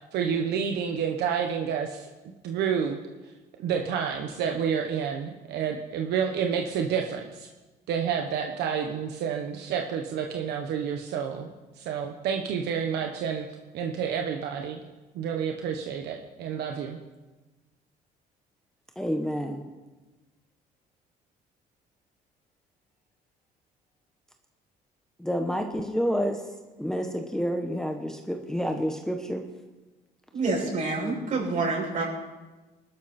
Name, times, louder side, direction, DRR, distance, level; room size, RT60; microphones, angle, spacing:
voice 1, 0.1-2.1 2.4-3.0 3.6-7.5 7.9-11.5 11.8-13.4 13.7-14.8 15.1-17.0, right 7 dB, 80° right, 3 dB, 1.2 m, -29 dB
voice 2, 19.0-19.6 25.2-26.4 26.8-29.4, equal, 5° left, 3 dB, 1.2 m, -29 dB
voice 3, 30.3-32.1, right 3 dB, 50° right, -3 dB, 6.6 m, -27 dB
21.0 x 12.5 x 4.3 m, 1.2 s
cardioid pair, 110°, 17 cm